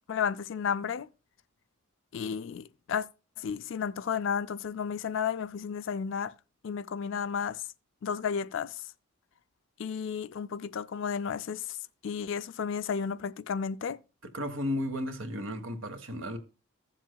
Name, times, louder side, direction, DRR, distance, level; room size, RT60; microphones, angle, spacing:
voice 1, 0.1-1.1 2.1-3.1 3.4-6.3 6.6-7.6 8.0-8.7 9.8-11.7 12.0-14.0, left 7 dB, 60° left, 0.4 m, -32 dB
voice 2, 14.2-16.4, left 1 dB, 65° right, 1.4 m, -34 dB
15.5 x 7.3 x 2.3 m
head